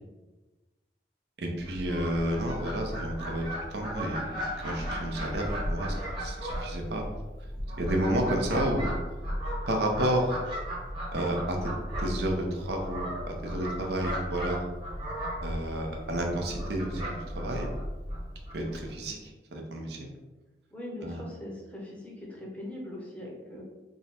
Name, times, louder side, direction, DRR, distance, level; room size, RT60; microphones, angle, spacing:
voice 1, 1.4-3.4 3.7-7.0 7.8-8.9 9.7-10.4 11.1-11.7 12.0-14.6 15.4-17.7 18.5-20.1 21.0-21.2, right 1 dB, 70° right, 1 dB, 0.7 m, -31 dB
Fowl, 1.6-18.9, equal, 30° right, 1.2 m, -35 dB
voice 2, 20.7-23.6, left 1 dB, 10° left, -3 dB, 0.7 m, -41 dB
3.6 x 2.2 x 4.2 m, 1.1 s
head